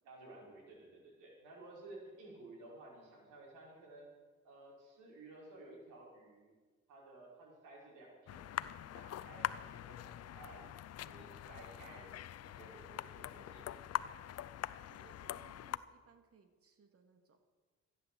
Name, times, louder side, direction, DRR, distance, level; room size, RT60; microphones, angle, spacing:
voice 1, 0.0-4.1 4.4-6.5 6.9-8.5 8.9-10.6 11.0-12.1 12.4-14.0, right 2 dB, 90° right, -3 dB, 5.6 m, -55 dB
sound 1, 8.3-15.8, left 12 dB, 55° left, 0.6 m, -43 dB
voice 2, 14.9-17.4, right 5 dB, 50° right, 7 dB, 2.2 m, -65 dB
15.0 x 9.7 x 7.8 m, 1.4 s
cardioid pair, 90°, 30 cm